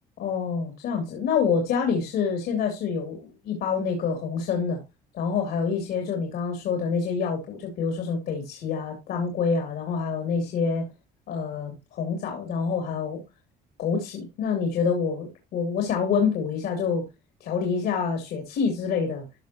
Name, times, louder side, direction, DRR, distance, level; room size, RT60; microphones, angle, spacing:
voice 1, 0.2-4.8 5.1-10.9 11.3-13.2 13.8-17.0 17.4-19.2, left 5 dB, 70° left, 2.9 m, -27 dB
14.0 x 5.7 x 3.0 m
cardioid pair, 110°, 17 cm